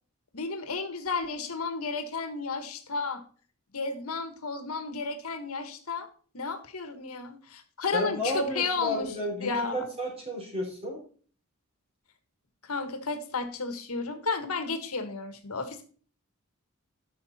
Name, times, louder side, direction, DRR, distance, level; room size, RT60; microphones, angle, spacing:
voice 1, 0.3-3.2 3.7-6.1 6.3-9.1 9.4-9.8 12.6-15.8, left 4 dB, 80° left, 8 dB, 1.4 m, -32 dB
voice 2, 7.9-11.0, equal, 25° right, -2 dB, 4.6 m, -32 dB
10.5 x 6.3 x 4.2 m, 0.42 s
head